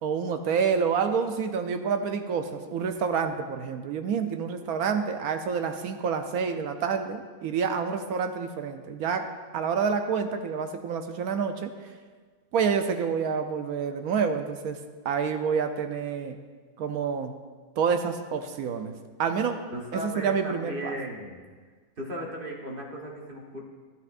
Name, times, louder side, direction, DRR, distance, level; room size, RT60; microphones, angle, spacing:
voice 1, 0.0-9.3 9.5-11.9 12.5-14.8 15.0-16.4 16.8-17.4 17.8-19.6 19.9-20.9, right 6 dB, 70° right, 7 dB, 1.0 m, -28 dB
voice 2, 19.7-21.4 22.0-23.6, equal, 35° right, -1 dB, 1.2 m, -36 dB
12.5 x 10.5 x 2.5 m, 1.5 s
omnidirectional pair, 1.8 m